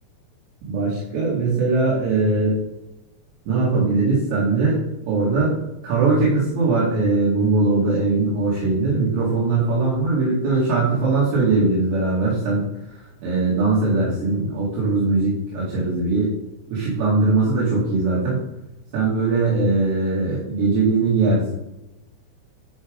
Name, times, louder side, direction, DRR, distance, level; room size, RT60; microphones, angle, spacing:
voice 1, 0.7-2.6 3.5-5.6 5.8-12.6 12.9-16.3 16.7-18.4 18.9-21.5, right 3 dB, 75° right, -7 dB, 4.6 m, -20 dB
12.0 x 5.0 x 3.9 m, 0.91 s
omnidirectional pair, 5.0 m